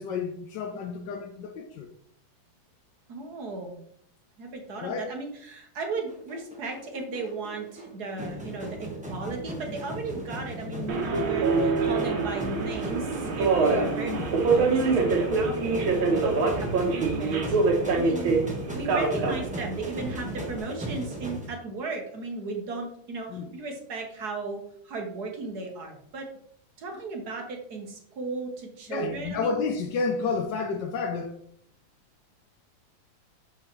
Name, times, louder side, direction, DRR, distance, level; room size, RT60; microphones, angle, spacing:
voice 1, 0.0-1.9 4.8-5.1 10.7-10.9 14.1-14.3 23.3-23.5 28.9-31.4, left 4 dB, 70° left, 1.1 m, -31 dB
voice 2, 3.1-3.7 4.4-15.8 16.1-18.4 18.7-26.3 26.8-29.6, right 3 dB, 55° right, 1.5 m, -36 dB
sound 1, 6.1-21.5, right 1 dB, 5° right, 0.9 m, -37 dB
Subway metro underground, 10.9-20.6, right 4 dB, 80° right, 1.9 m, -25 dB
6.9 x 5.5 x 3.0 m
omnidirectional pair, 2.2 m